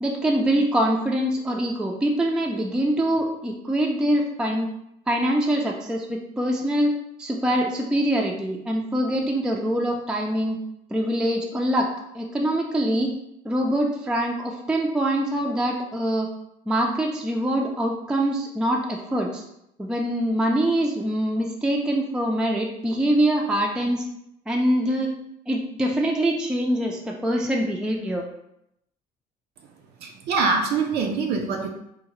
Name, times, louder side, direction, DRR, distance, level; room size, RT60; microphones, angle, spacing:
voice 1, 0.0-4.7 5.1-6.9 7.2-10.6 10.9-11.9 12.1-13.1 13.4-16.3 16.7-19.4 19.8-24.0 24.5-25.1 25.5-28.2, right 1 dB, 5° right, 0 dB, 0.3 m, -24 dB
voice 2, 30.0-31.7, right 4 dB, 75° right, 2 dB, 0.4 m, -24 dB
3.7 x 2.0 x 3.0 m, 0.79 s
cardioid pair, 110°, 17 cm